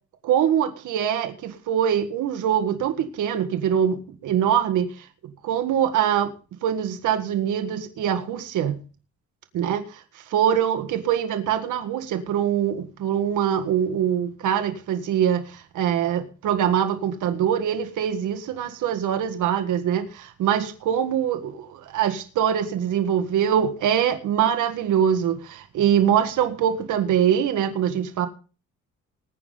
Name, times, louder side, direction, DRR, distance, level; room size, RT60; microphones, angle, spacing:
voice 1, 0.2-5.1 5.4-6.3 6.6-8.8 9.5-28.3, right 9 dB, 80° right, 1.7 m, -23 dB
20.5 x 9.6 x 3.9 m
cardioid pair, 90°, 30 cm